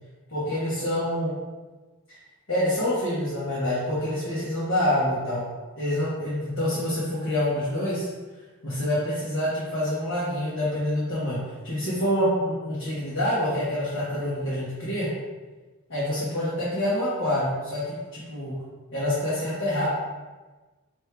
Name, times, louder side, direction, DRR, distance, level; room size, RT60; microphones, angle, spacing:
voice 1, 0.3-1.4 2.5-5.4 5.8-8.1 8.6-15.1 15.9-18.6 18.9-19.9, left 1 dB, 65° left, -11 dB, 1.5 m, -26 dB
3.4 x 3.3 x 4.5 m, 1.2 s
head